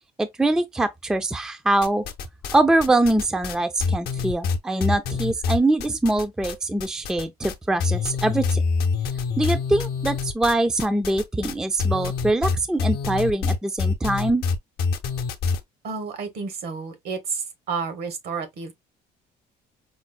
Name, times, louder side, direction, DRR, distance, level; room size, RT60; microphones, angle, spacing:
voice 1, 0.2-2.0 2.5-8.6 9.4-14.5, right 2 dB, 5° right, 0.3 m, -23 dB
sound 1, 1.8-2.6 2.8-6.5 6.8-7.5 7.8-15.6, left 5 dB, 70° left, 0.6 m, -25 dB
voice 2, 15.8-17.4 17.7-18.7, right 5 dB, 70° right, 1.1 m, -30 dB
5.0 x 2.0 x 2.3 m
cardioid pair, 110°, 17 cm